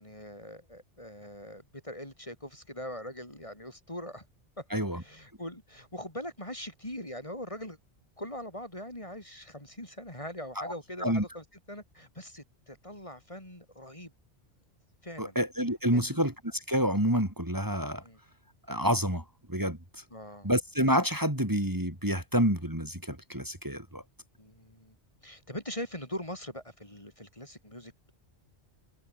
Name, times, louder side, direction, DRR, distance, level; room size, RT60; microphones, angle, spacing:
voice 1, 0.0-4.3 4.6-4.7 4.9-7.8 8.2-14.1 15.0-15.4 15.9-16.2 18.0-18.2 20.1-20.5 24.4-25.0 25.2-28.1, left 1 dB, 30° left, 5.5 m, -42 dB
voice 2, 4.7-5.0 10.6-10.7 11.0-11.2 15.2-18.0 18.7-19.2 19.5-19.8 20.4-24.0, equal, 15° right, 4.6 m, -28 dB
omnidirectional pair, 1.2 m